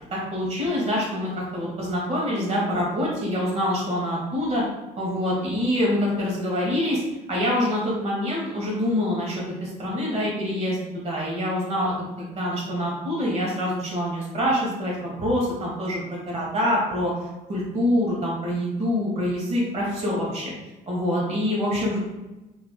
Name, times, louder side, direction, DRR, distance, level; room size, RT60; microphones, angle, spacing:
voice 1, 0.1-4.6 4.9-7.0 7.3-17.1 17.5-20.5 20.9-22.0, left 1 dB, 40° right, -4 dB, 1.5 m, -25 dB
3.1 x 3.0 x 2.2 m, 1.0 s
cardioid pair, 110°, 17 cm